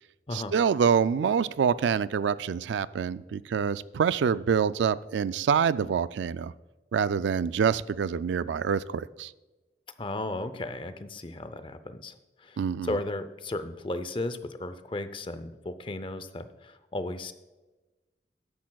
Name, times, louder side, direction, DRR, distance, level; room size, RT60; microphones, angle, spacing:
voice 1, 0.3-6.5 6.9-9.3 12.6-13.0, right 7 dB, 85° right, 16 dB, 0.3 m, -26 dB
voice 2, 10.0-17.3, left 2 dB, 30° left, 11 dB, 0.6 m, -35 dB
13.5 x 10.0 x 2.3 m, 1.1 s
head